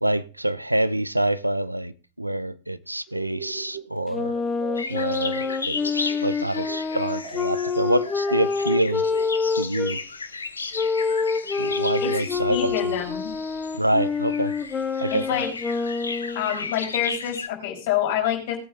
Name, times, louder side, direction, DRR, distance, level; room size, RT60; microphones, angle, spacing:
voice 1, 0.0-1.9 2.2-4.3 4.9-9.0 9.5-10.0 11.6-12.9 13.8-14.5 15.0-15.4, right 1 dB, 85° right, 0.7 m, -26 dB
sound 1, 3.1-6.3 6.6-9.6, right 7 dB, 50° right, 5.8 m, -41 dB
Wind instrument woodwind instrument, 4.1-9.9 10.7-16.5, left 4 dB, 20° left, 1.2 m, -27 dB
sound 2, 4.8-17.5, left 4 dB, 75° left, 1.0 m, -35 dB
voice 2, 11.7-13.3 15.1-15.5 16.3-18.6, left 10 dB, 50° left, 4.3 m, -27 dB
18.5 x 8.6 x 3.7 m
figure-of-eight pair, 90°, 0 cm